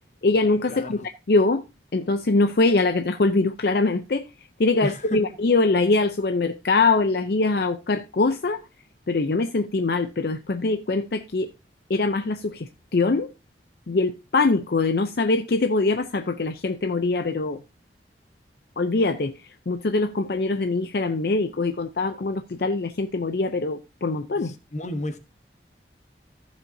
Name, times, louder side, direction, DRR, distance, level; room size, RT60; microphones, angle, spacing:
voice 1, 0.2-1.6 1.9-4.2 4.6-8.6 9.1-11.5 11.9-13.3 13.9-17.6 18.8-19.3 19.7-24.5, left 3 dB, 60° left, 0.6 m, -23 dB
voice 2, 4.8-5.2 24.7-25.2, left 1 dB, 40° left, 1.1 m, -30 dB
14.5 x 7.2 x 2.7 m
head